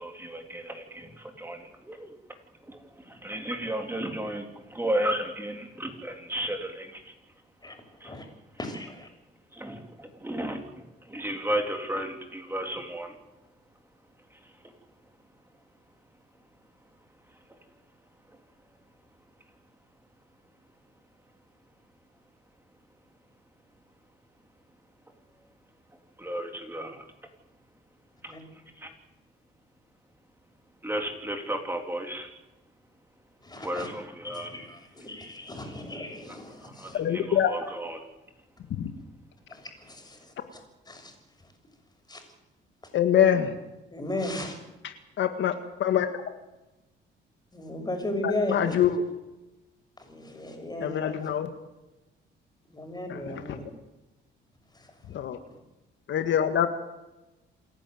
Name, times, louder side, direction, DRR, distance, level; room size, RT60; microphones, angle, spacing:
voice 1, 0.0-2.1 2.6-7.1 8.0-8.1 9.5-13.2 14.3-14.7 17.3-17.6 18.3-18.4 26.2-27.0 28.2-28.9 30.8-32.3 33.6-34.5 36.3-38.0, right 1 dB, 10° right, 4 dB, 3.8 m, -34 dB
voice 2, 7.6-8.3 8.6-9.1 28.3-28.4 33.4-33.9 34.2-37.1 39.5-41.2 41.4-41.5 42.1-42.2 43.9-44.6 47.5-48.8 50.0-51.2 52.7-53.7 54.7-55.0, left 1 dB, 20° left, 5 dB, 6.8 m, -36 dB
voice 3, 36.9-37.5 38.8-38.9 42.9-43.5 44.8-45.5 45.8-46.1 48.2-49.0 50.8-51.5 53.1-53.4 55.1-55.4 56.1-56.7, left 9 dB, 70° left, 8 dB, 1.9 m, -24 dB
28.0 x 11.0 x 9.4 m, 1.0 s
cardioid pair, 90°, 20 cm